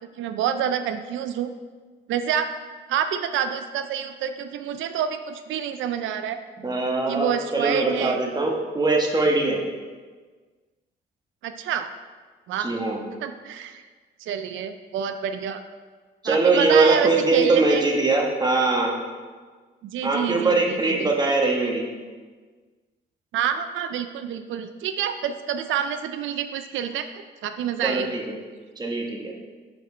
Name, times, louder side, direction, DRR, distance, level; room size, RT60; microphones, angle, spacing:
voice 1, 0.2-1.5 2.1-2.5 2.9-6.4 7.1-8.2 11.4-11.9 12.5-12.7 13.2-13.9 14.2-15.6 16.2-17.8 19.8-21.1 23.3-28.2, right 8 dB, 75° right, 9 dB, 0.4 m, -28 dB
voice 2, 6.6-9.6 12.6-13.0 16.2-19.0 20.0-21.9 27.8-28.2 28.8-29.3, right 3 dB, 20° right, 0 dB, 1.2 m, -22 dB
5.0 x 4.3 x 5.3 m, 1.4 s
cardioid pair, 90°, 20 cm